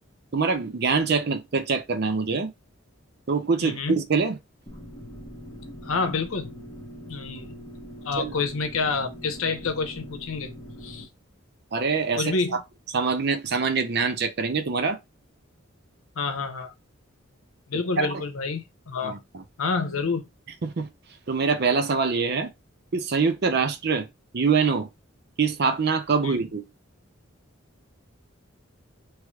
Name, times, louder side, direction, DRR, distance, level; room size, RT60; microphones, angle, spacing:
voice 1, 0.3-2.5 3.3-4.4 8.2-8.3 11.7-12.6 12.9-15.0 18.0-18.1 19.0-19.4 20.6-20.9 21.3-22.5 22.9-24.1 24.3-24.9 25.4-26.6, right 5 dB, 50° right, 0.5 m, -24 dB
voice 2, 3.6-4.0 5.8-6.5 7.1-7.6 8.0-10.5 10.8-11.1 12.2-12.6 16.2-16.7 17.7-19.2 19.6-20.3 26.2-26.3, left 4 dB, 85° left, 0.8 m, -28 dB
sound 1, 4.7-11.0, equal, 20° left, 0.8 m, -42 dB
3.2 x 3.0 x 2.2 m
head